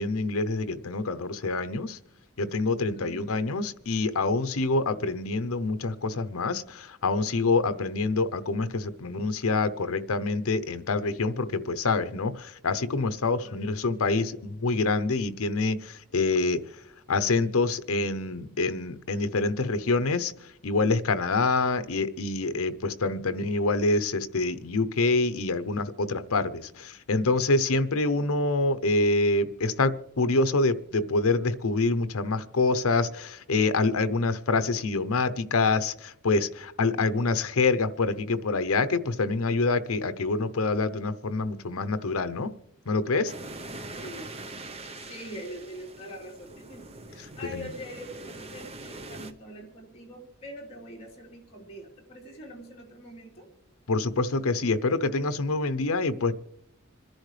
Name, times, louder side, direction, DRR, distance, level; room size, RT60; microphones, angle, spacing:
voice 1, 0.0-2.0 2.4-14.3 14.6-16.6 17.1-20.3 20.6-42.5 42.9-43.3 47.5-47.7 53.9-56.3, left 3 dB, 75° left, 12 dB, 0.8 m, -26 dB
voice 2, 3.0-3.3 13.4-14.4 43.9-44.3 45.0-53.5, equal, 30° left, -2 dB, 3.8 m, -43 dB
sound 1, 43.3-49.3, right 2 dB, 30° right, 0.8 m, -42 dB
27.0 x 10.5 x 3.3 m, 0.79 s
head